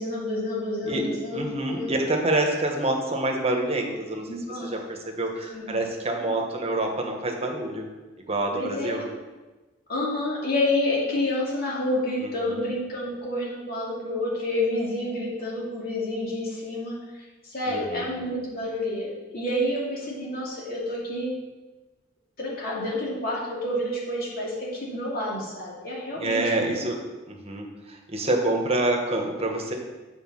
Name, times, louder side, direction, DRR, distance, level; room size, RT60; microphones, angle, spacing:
voice 1, 0.0-1.9 4.3-4.7 5.5-5.8 8.5-9.0 9.9-17.0 17.5-21.4 22.4-26.7, left 1 dB, 50° left, -5 dB, 2.6 m, -29 dB
voice 2, 0.8-7.9 8.2-9.1 12.2-12.6 17.7-18.1 26.2-27.0 27.3-29.7, right 2 dB, 30° right, 1 dB, 1.3 m, -27 dB
7.8 x 4.8 x 6.3 m, 1.2 s
head